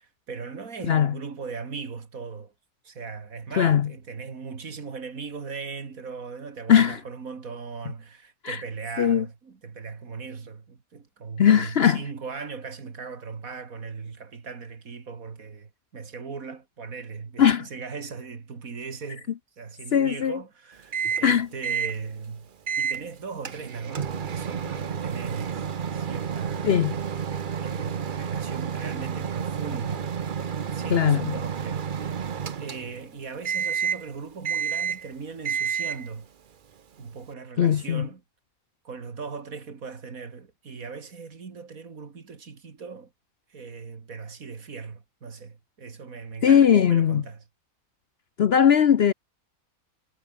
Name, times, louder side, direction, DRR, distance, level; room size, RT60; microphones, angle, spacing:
voice 1, 0.0-2.5 2.8-22.5 22.8-25.7 25.9-26.8 27.6-30.1 30.7-36.3 37.0-38.2 38.8-43.1 43.5-47.4, right 5 dB, 70° right, 2.6 m, -38 dB
voice 2, 3.6-3.9 6.7-7.0 8.4-8.6 9.0-9.3 11.4-12.0 17.4-17.7 19.9-20.4 21.2-21.5 26.6-26.9 30.9-31.4 37.6-38.1 46.4-47.2 48.4-49.1, left 8 dB, 55° left, 0.8 m, -19 dB
Microwave oven, 20.9-21.3 21.6-22.0 22.7-23.0 23.4-33.1 33.4-34.1 34.4-35.1 35.4-36.1, right 7 dB, 40° right, 0.8 m, -30 dB
omnidirectional pair, 1.5 m